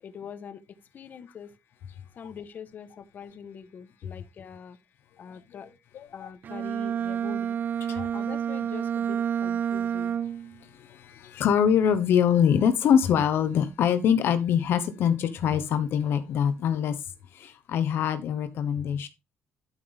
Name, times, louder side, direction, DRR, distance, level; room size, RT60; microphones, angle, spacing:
voice 1, 0.0-1.6 2.2-4.8 5.2-5.7 6.1-7.6 7.9-10.2, left 7 dB, 50° left, 1.2 m, -43 dB
Bowed string instrument, 6.4-10.6, right 8 dB, 50° right, 0.6 m, -29 dB
voice 2, 10.8-16.9 17.3-19.1, left 8 dB, 70° left, 1.1 m, -24 dB
12.0 x 5.5 x 3.5 m
cardioid pair, 110°, 4 cm